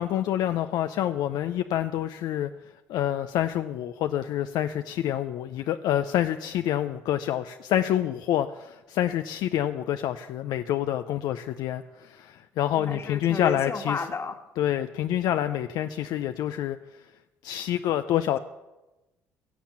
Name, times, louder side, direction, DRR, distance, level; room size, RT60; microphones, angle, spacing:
voice 1, 0.0-2.5 2.9-14.0 14.6-16.8 17.4-18.4, left 11 dB, 70° left, 8 dB, 0.5 m, -27 dB
voice 2, 12.8-14.4, left 4 dB, 35° left, 6 dB, 1.5 m, -32 dB
16.5 x 7.2 x 7.3 m, 1.0 s
supercardioid pair, 65°, 7 cm